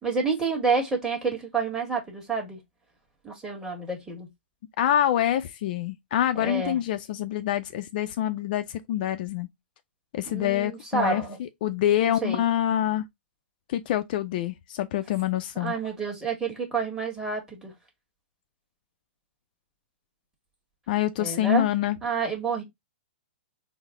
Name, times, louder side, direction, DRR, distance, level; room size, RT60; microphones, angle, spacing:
voice 1, 0.0-2.6 3.2-4.3 6.4-6.8 10.3-11.4 12.0-12.4 15.6-17.7 21.2-21.6 22.0-22.6, right 4 dB, 10° right, 1.5 m, -29 dB
voice 2, 4.8-9.5 10.1-13.1 13.7-15.7 20.9-22.0, left 11 dB, 50° left, 0.4 m, -26 dB
3.9 x 2.1 x 3.6 m
hypercardioid pair, 125°, 6 cm